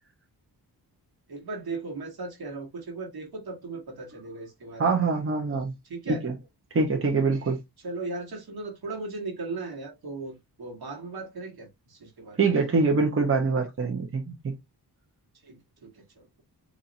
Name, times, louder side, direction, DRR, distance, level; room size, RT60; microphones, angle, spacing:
voice 1, 1.3-5.0 5.8-6.2 7.8-12.4 15.4-16.4, right 3 dB, 60° right, 1.4 m, -37 dB
voice 2, 4.8-5.7 6.1-6.3 6.7-7.6 12.4-14.5, right 4 dB, 30° right, 0.9 m, -24 dB
4.2 x 2.7 x 2.6 m
wide cardioid pair, 130°, 41 cm